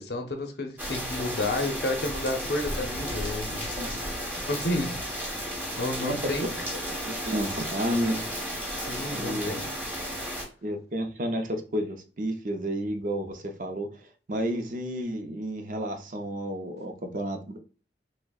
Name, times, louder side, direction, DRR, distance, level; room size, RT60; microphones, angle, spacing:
voice 1, 0.0-4.2 4.5-5.0 5.8-6.5 8.8-9.7, left 2 dB, 65° left, 0.6 m, -31 dB
sound 1, 0.8-10.4, equal, 10° right, 1.0 m, -33 dB
voice 2, 3.5-4.0 6.0-6.3 7.0-8.2 9.1-9.5 10.6-17.6, equal, 45° right, 0.5 m, -31 dB
6.0 x 2.1 x 2.3 m
head